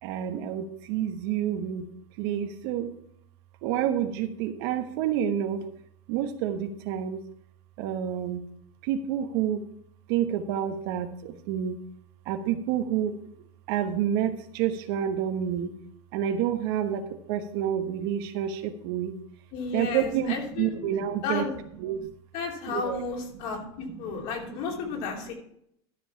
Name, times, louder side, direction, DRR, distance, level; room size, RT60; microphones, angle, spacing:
voice 1, 0.0-1.9 2.2-2.9 3.6-5.7 6.1-7.2 7.8-8.4 8.8-9.7 10.1-11.8 12.2-13.2 13.7-15.7 16.1-19.1 19.7-21.5 21.8-22.1 22.7-23.0 23.3-24.9, right 9 dB, 60° right, 8 dB, 1.1 m, -29 dB
voice 2, 19.5-20.7 21.2-21.5 22.3-25.3, left 4 dB, 55° left, 0 dB, 3.1 m, -33 dB
13.0 x 5.5 x 5.7 m, 0.70 s
supercardioid pair, 140°, 14 cm